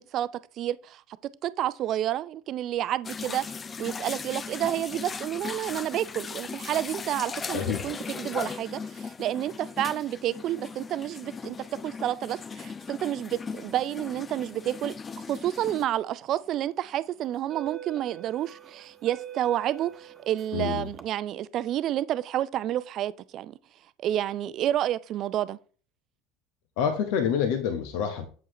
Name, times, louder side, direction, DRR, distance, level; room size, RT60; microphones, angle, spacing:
voice 1, 0.6-1.0 1.4-3.5 3.8-11.6 11.8-23.6 24.0-25.6, right 12 dB, 45° right, 0.5 m, -30 dB
sound 1, 3.0-15.8, left 5 dB, 25° left, 0.5 m, -38 dB
voice 2, 7.5-7.9 20.5-20.9 26.8-28.3, left 7 dB, 60° left, 1.0 m, -27 dB
sound 2, 16.2-16.5 17.2-21.0, right 11 dB, 25° right, 1.1 m, -45 dB
8.0 x 7.6 x 3.0 m
figure-of-eight pair, 70°, 0 cm